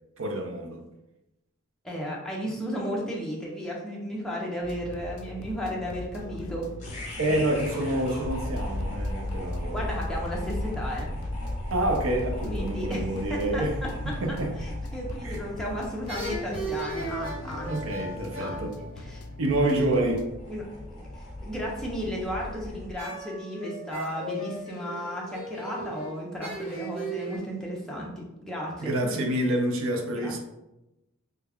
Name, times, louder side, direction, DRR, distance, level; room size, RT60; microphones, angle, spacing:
voice 1, 0.2-0.8 7.2-9.9 11.7-13.8 14.2-14.5 15.2-15.4 17.6-18.8 19.4-20.3 28.8-30.4, right 1 dB, 70° right, 0.5 m, -27 dB
voice 2, 1.8-6.7 7.2-7.4 9.7-11.1 12.5-13.0 13.3-13.9 14.3-17.7 18.4-18.6 19.0-19.2 20.5-28.9 30.1-30.4, equal, ahead, 0.6 m, -34 dB
sound 1, 4.6-20.3, left 3 dB, 75° left, 0.3 m, -42 dB
sound 2, 6.8-23.0, left 1 dB, 35° left, 1.0 m, -36 dB
sound 3, 15.3-15.7 16.1-19.7 23.0-27.4, right 1 dB, 30° right, 1.1 m, -37 dB
3.2 x 2.3 x 3.4 m
head